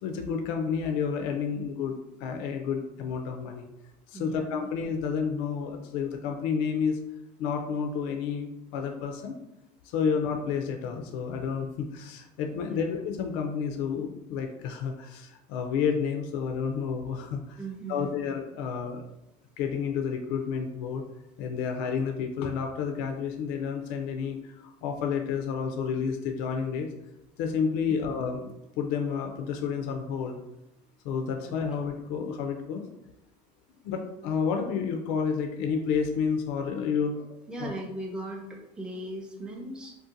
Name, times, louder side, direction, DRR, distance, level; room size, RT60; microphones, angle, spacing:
voice 1, 0.0-3.7 4.1-7.0 7.4-9.4 9.9-17.6 17.9-19.0 19.6-21.0 21.4-26.9 27.4-28.5 28.8-30.4 31.0-32.8 33.8-37.3 37.6-37.7, left 6 dB, 75° left, 4 dB, 0.4 m, -30 dB
voice 2, 4.1-4.7 12.7-12.8 17.6-18.1 27.9-28.0 31.4-31.5 37.5-40.0, right 2 dB, 5° right, -1 dB, 0.5 m, -38 dB
2.6 x 2.1 x 3.7 m, 0.90 s
supercardioid pair, 115°, 20 cm